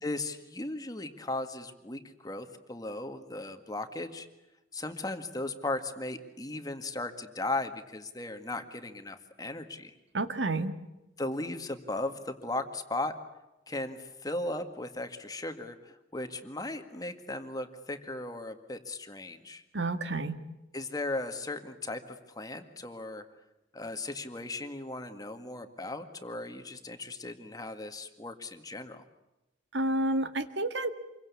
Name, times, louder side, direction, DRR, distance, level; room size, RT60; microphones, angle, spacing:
voice 1, 0.0-4.3 4.7-9.9 11.2-13.1 13.7-19.6 20.7-23.2 23.7-29.0, left 2 dB, 20° left, 7 dB, 1.9 m, -37 dB
voice 2, 10.1-10.7 19.7-20.4 29.7-30.9, right 2 dB, 75° right, 9 dB, 1.8 m, -30 dB
27.5 x 23.0 x 8.5 m, 0.96 s
head